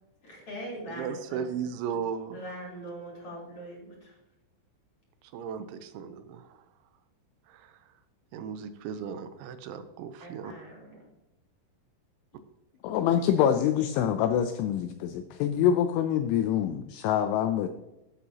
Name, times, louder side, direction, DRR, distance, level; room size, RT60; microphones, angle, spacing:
voice 1, 0.2-1.5 2.3-4.2 10.2-11.1, equal, 30° left, 3.9 m, -42 dB
voice 2, 0.8-2.4 5.2-6.7 7.5-8.0 8.3-10.5, right 7 dB, 85° right, 2.9 m, -36 dB
voice 3, 12.8-17.7, left 9 dB, 80° left, 2.9 m, -25 dB
15.5 x 8.1 x 2.9 m
omnidirectional pair, 5.8 m